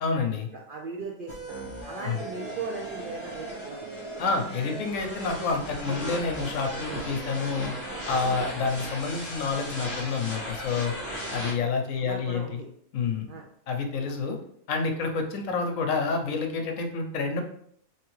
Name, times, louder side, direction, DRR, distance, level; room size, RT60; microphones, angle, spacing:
voice 1, 0.0-0.5 2.1-2.2 4.2-7.7 8.1-10.9 11.3-12.6 12.9-13.3 13.7-14.4 14.7-17.4, left 4 dB, 80° left, 5 dB, 1.0 m, -28 dB
voice 2, 0.5-3.8 11.4-11.7 12.0-12.7 13.3-13.5, right 4 dB, 65° right, -2 dB, 0.5 m, -38 dB
sound 1, 1.3-11.5, right 1 dB, 10° right, 1.3 m, -36 dB
3.4 x 3.1 x 3.1 m, 0.66 s
omnidirectional pair, 1.4 m